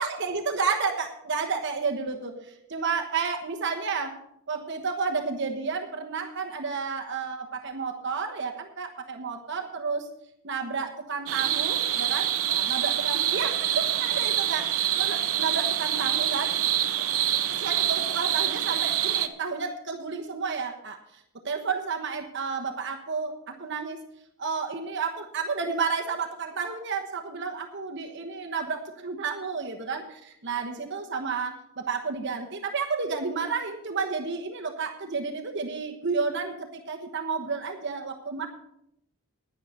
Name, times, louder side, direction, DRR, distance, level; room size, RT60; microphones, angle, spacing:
voice 1, 0.0-4.2 4.5-10.1 10.4-16.5 17.6-21.0 21.4-24.0 24.4-38.5, right 5 dB, 50° right, 3 dB, 1.2 m, -31 dB
sound 1, 11.3-19.3, right 11 dB, 70° right, 0.8 m, -26 dB
10.5 x 10.0 x 5.3 m, 0.75 s
head